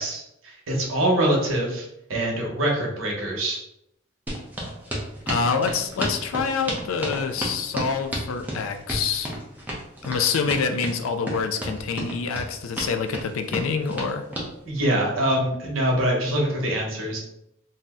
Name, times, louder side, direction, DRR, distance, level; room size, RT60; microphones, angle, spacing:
voice 1, 0.0-3.6 14.7-17.2, right 1 dB, 75° right, -1 dB, 0.9 m, -24 dB
sound 1, 4.3-14.5, right 1 dB, 10° right, 0.5 m, -31 dB
voice 2, 5.3-9.4 10.0-14.3, left 5 dB, 75° left, 7 dB, 0.3 m, -26 dB
2.6 x 2.1 x 3.5 m, 0.78 s
head